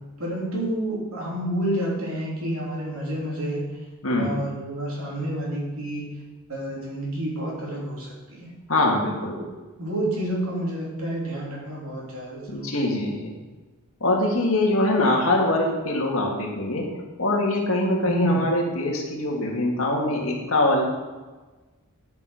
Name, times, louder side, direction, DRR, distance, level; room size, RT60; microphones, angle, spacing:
voice 1, 0.2-3.6 4.2-6.1 6.5-8.5 9.2-9.4 9.8-12.7 18.0-18.4, equal, 70° right, -4 dB, 3.3 m, -29 dB
voice 2, 8.7-9.4 12.5-13.3 14.0-16.9 17.2-20.9, left 1 dB, 65° left, 0 dB, 2.0 m, -23 dB
11.0 x 6.1 x 4.9 m, 1.2 s
head